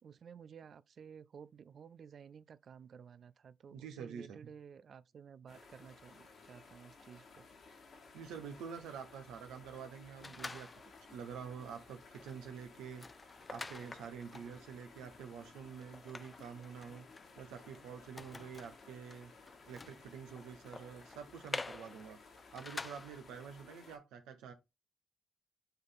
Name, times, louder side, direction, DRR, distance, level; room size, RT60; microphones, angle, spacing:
voice 1, 0.0-7.5, right 7 dB, 60° right, 0.4 m, -54 dB
voice 2, 3.7-4.4 8.1-10.7 11.1-17.1 17.4-19.3 19.6-22.2 22.5-24.5, right 7 dB, 80° right, 1.0 m, -47 dB
sound 1, 5.5-24.0, left 4 dB, 65° left, 2.1 m, -58 dB
sound 2, 10.2-11.1 11.6-11.7 12.0-23.4, left 3 dB, 35° left, 0.6 m, -49 dB
7.8 x 3.5 x 3.9 m
hypercardioid pair, 45°, 0 cm